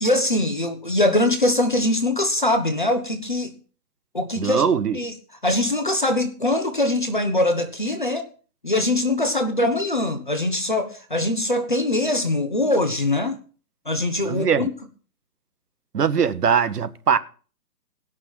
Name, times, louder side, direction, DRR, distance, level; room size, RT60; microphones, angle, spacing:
voice 1, 0.0-3.5 4.1-4.6 4.9-5.1 5.4-8.3 8.6-13.4 13.9-14.7, left 1 dB, 30° left, 0.7 m, -22 dB
voice 2, 4.4-5.0 14.2-14.7 15.9-17.2, right 7 dB, 70° right, 1.0 m, -21 dB
18.0 x 6.1 x 4.4 m
hypercardioid pair, 180°, 49 cm